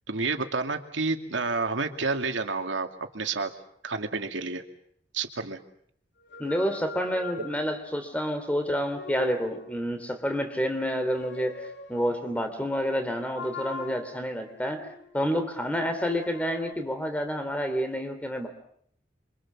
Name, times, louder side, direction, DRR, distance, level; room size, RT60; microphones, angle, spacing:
voice 1, 0.1-3.5 3.8-4.6 5.1-5.6, right 4 dB, 90° right, 5 dB, 2.5 m, -29 dB
sound 1, 6.2-8.0 8.6-9.9 10.9-12.3 13.3-15.2 15.8-16.7, left 2 dB, 65° left, 3.5 m, -42 dB
voice 2, 6.4-11.6 11.9-14.8 15.1-18.5, equal, 10° left, 7 dB, 3.2 m, -29 dB
28.0 x 25.5 x 7.4 m, 0.68 s
head